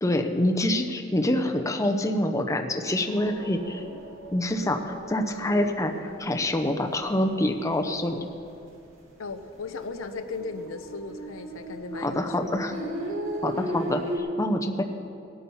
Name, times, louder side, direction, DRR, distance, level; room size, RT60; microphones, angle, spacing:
voice 1, 0.0-3.8 4.3-8.2 12.0-12.7 13.4-14.8, left 1 dB, 15° left, 5 dB, 0.7 m, -26 dB
sound 1, 3.1-7.0 7.3-8.0 8.3-8.4 8.7-14.2, right 1 dB, 90° right, 2.6 m, -37 dB
voice 2, 9.2-12.4, left 3 dB, 90° left, 8 dB, 0.8 m, -36 dB
18.5 x 8.6 x 5.6 m, 2.6 s
head